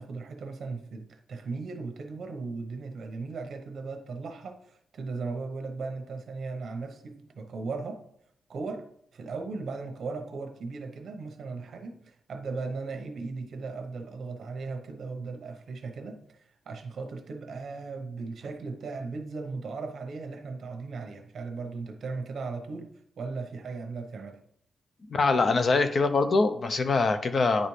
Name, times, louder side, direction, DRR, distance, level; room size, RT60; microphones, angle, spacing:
voice 1, 0.0-8.0 8.5-8.9 9.1-22.9 23.2-24.4, right 4 dB, 60° right, 0.9 m, -37 dB
voice 2, 25.1-27.7, left 3 dB, 45° left, 0.5 m, -23 dB
9.9 x 4.1 x 3.2 m
wide cardioid pair, 155°, 0 cm